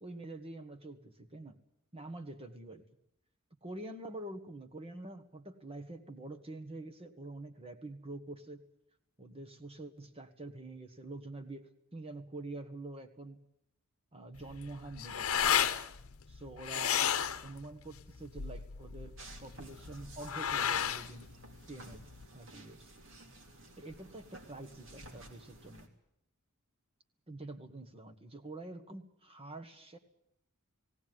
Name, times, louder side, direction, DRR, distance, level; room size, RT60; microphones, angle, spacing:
voice 1, 0.0-1.6 1.9-2.8 3.6-8.7 9.2-13.4 14.1-15.4 16.3-17.0 17.4-19.1 19.4-21.3 21.7-22.0 22.3-22.9 23.8-25.9 27.3-30.0, right 2 dB, 25° right, 6 dB, 1.5 m, -46 dB
sound 1, 14.3-22.2, left 9 dB, 70° left, 0.9 m, -34 dB
sound 2, 19.2-25.9, right 1 dB, 60° right, 3.0 m, -53 dB
18.5 x 18.0 x 9.4 m, 0.76 s
head